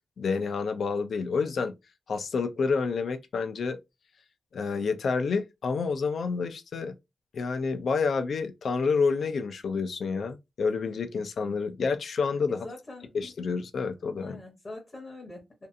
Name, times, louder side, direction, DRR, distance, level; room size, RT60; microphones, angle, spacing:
voice 1, 0.2-1.7 2.1-3.8 4.5-6.9 7.3-12.6 13.1-14.4, left 5 dB, 80° left, 0.4 m, -29 dB
voice 2, 12.5-13.1 14.2-15.7, left 2 dB, 30° left, 0.7 m, -43 dB
2.6 x 2.3 x 2.5 m
wide cardioid pair, 150°, 0 cm